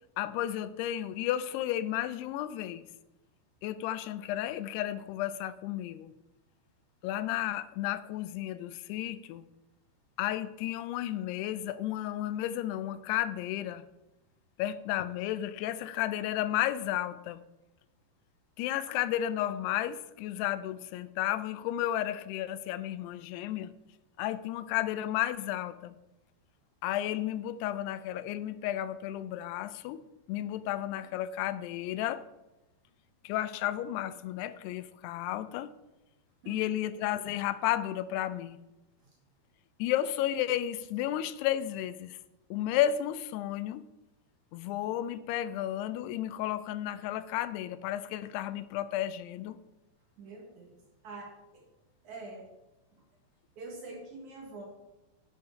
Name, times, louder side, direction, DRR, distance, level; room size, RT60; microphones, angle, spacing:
voice 1, 0.2-2.9 3.6-6.1 7.0-9.5 10.2-13.8 14.6-17.4 18.6-23.7 24.2-26.0 26.8-30.0 30.3-32.3 33.2-35.7 36.5-38.6 39.8-42.2 42.5-43.8 44.5-49.6, left 12 dB, 85° left, 2.4 m, -33 dB
voice 2, 50.2-50.8 51.0-51.6 52.0-52.5 53.6-54.6, right 3 dB, 55° right, 2.4 m, -45 dB
10.5 x 9.4 x 4.4 m
omnidirectional pair, 5.0 m